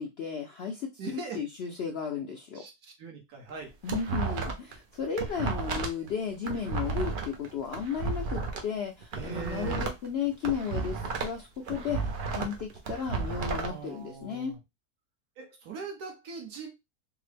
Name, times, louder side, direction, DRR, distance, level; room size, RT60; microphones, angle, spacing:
voice 1, 0.0-2.6 3.8-12.0 12.3-14.5, left 7 dB, 75° left, 0.5 m, -34 dB
voice 2, 1.0-1.4 2.5-2.7 3.0-3.7 9.1-9.9 13.3-14.6 15.4-16.7, right 5 dB, 80° right, 1.5 m, -40 dB
sound 1, 3.5-4.7 5.0-8.6 9.0-11.4 11.7-13.7, right 4 dB, 60° right, 0.5 m, -33 dB
3.6 x 2.0 x 3.2 m
omnidirectional pair, 1.6 m